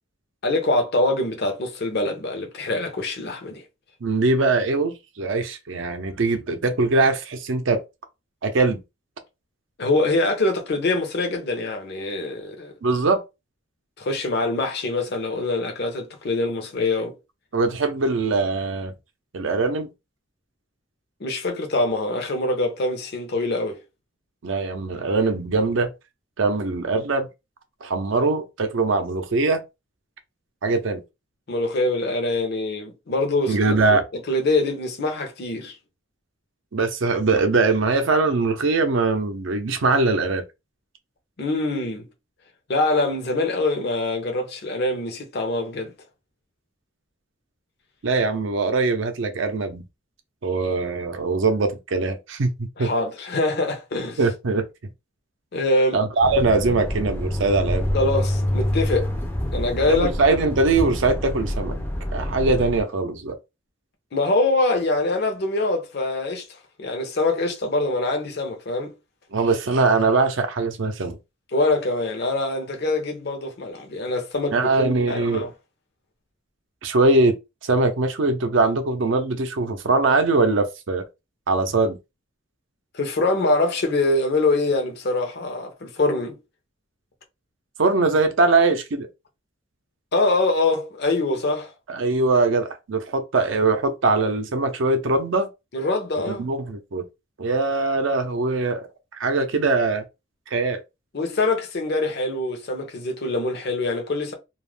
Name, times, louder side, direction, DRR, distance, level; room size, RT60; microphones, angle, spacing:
voice 1, 0.4-3.6 9.8-12.7 14.0-17.1 21.2-23.8 31.5-33.6 33.9-34.0 34.3-35.7 41.4-42.0 42.7-45.9 52.8-54.2 55.5-56.0 57.9-59.1 59.5-60.1 64.1-66.4 66.8-68.9 71.5-75.5 82.9-86.4 90.1-91.7 95.7-96.5 101.1-104.3, left 2 dB, 55° left, 0.6 m, -24 dB
voice 2, 4.0-7.8 8.4-8.8 12.8-13.2 17.5-18.9 19.3-19.9 24.4-25.9 26.4-27.3 27.8-29.6 30.6-31.0 33.5-34.0 36.7-40.4 48.0-49.8 50.4-52.9 54.2-54.7 55.9-57.9 59.9-61.8 62.1-63.4 69.3-71.2 74.5-75.4 76.8-77.4 77.6-81.0 81.5-82.0 87.8-89.1 91.9-95.5 96.3-97.0 97.4-100.0 100.5-100.8, right 3 dB, 65° right, 0.5 m, -22 dB
sound 1, 56.2-62.8, left 1 dB, 10° left, 0.4 m, -27 dB
2.4 x 2.1 x 3.2 m
head